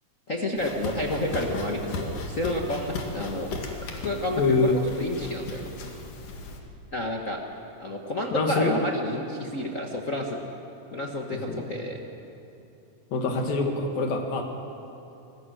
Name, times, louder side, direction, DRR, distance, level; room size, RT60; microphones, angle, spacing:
voice 1, 0.3-3.5 3.8-5.7 6.9-7.4 7.8-10.4 10.9-12.0, left 1 dB, 50° left, 0 dB, 0.9 m, -30 dB
sound 1, 0.6-6.6, left 2 dB, 70° left, 3.5 m, -36 dB
voice 2, 4.4-4.8 8.3-8.8 11.5-11.6 13.1-14.4, left 3 dB, 90° left, 3 dB, 3.9 m, -24 dB
27.0 x 20.5 x 6.4 m, 2.9 s
omnidirectional pair, 3.9 m